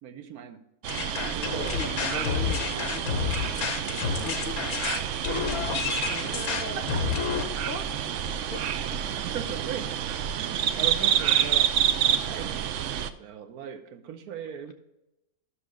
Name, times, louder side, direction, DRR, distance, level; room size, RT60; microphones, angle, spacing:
voice 1, 0.0-0.6 1.1-1.9 4.0-4.3 5.3-6.1 6.8-7.0 9.0-9.9 10.4-12.7 13.2-14.7, right 8 dB, 85° right, 7 dB, 1.3 m, -39 dB
sound 1, 0.8-13.1, right 9 dB, 65° right, 0.8 m, -28 dB
sound 2, 0.9-7.4, left 6 dB, 75° left, 1.4 m, -30 dB
voice 2, 1.6-3.7 4.0-5.3 6.1-7.0 7.3-8.8, left 2 dB, 45° left, 4 dB, 0.9 m, -40 dB
11.5 x 6.4 x 3.6 m, 0.91 s
omnidirectional pair, 1.5 m